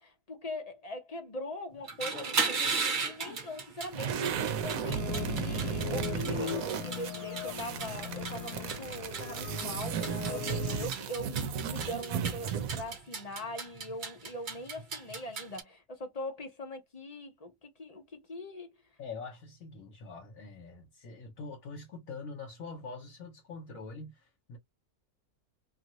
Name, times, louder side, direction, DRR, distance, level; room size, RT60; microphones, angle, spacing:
voice 1, 0.0-18.7, left 1 dB, 35° left, 0.7 m, -42 dB
sound 1, 1.8-15.6, right 4 dB, 40° right, 0.8 m, -37 dB
sound 2, 3.9-13.0, right 8 dB, 70° right, 1.0 m, -35 dB
sound 3, 4.8-10.9, left 11 dB, 85° left, 1.1 m, -39 dB
voice 2, 19.0-24.6, left 4 dB, 60° left, 1.4 m, -44 dB
2.8 x 2.6 x 2.9 m
omnidirectional pair, 1.7 m